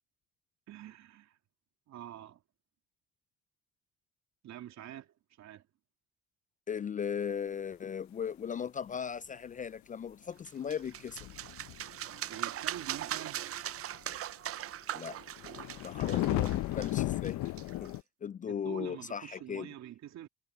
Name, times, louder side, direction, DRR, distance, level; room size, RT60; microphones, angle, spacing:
voice 1, 0.7-1.4 1.9-2.4 4.4-5.6 12.3-13.4 16.0-16.5 18.5-20.3, right 12 dB, 65° right, 3.1 m, -46 dB
voice 2, 6.7-11.3 14.9-15.2 15.8-17.4 17.8-17.9 18.2-19.7, left 7 dB, 30° left, 0.3 m, -37 dB
sound 1, 10.4-18.0, right 12 dB, 50° right, 0.6 m, -40 dB
sound 2, 11.1-12.1 12.7-13.0 13.9-14.0 15.2-18.0, left 16 dB, 70° left, 0.8 m, -33 dB
supercardioid pair, 70°, 29 cm